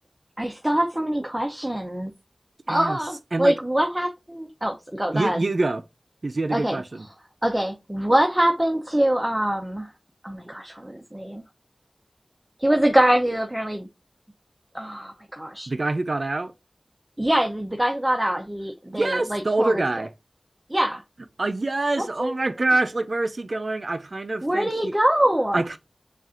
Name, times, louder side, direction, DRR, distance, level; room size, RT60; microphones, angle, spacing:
voice 1, 0.4-2.1 2.7-5.4 6.5-6.8 7.4-9.9 10.2-11.4 12.6-13.9 14.7-15.7 17.2-19.8 20.7-21.0 22.0-22.3 24.4-25.6, right 1 dB, 15° right, 0.6 m, -24 dB
voice 2, 2.7-3.0 3.3-3.5 5.1-5.8 6.2-7.1 15.7-16.5 18.9-20.1 21.4-24.9 25.5-25.8, right 2 dB, 60° right, 0.4 m, -25 dB
7.0 x 2.5 x 2.4 m
wide cardioid pair, 60°, 0 cm